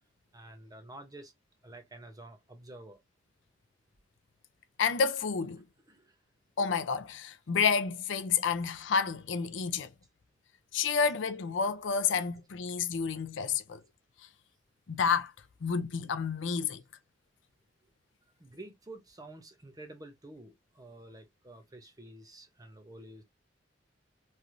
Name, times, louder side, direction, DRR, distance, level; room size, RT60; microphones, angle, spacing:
voice 1, 0.3-1.3 1.6-3.0 5.9-6.0 18.4-23.2, right 2 dB, 20° right, 0.8 m, -49 dB
voice 2, 4.8-5.6 6.6-9.9 10.7-13.8 14.9-15.3 15.6-16.8, left 6 dB, 80° left, 0.5 m, -30 dB
3.2 x 2.5 x 2.5 m
head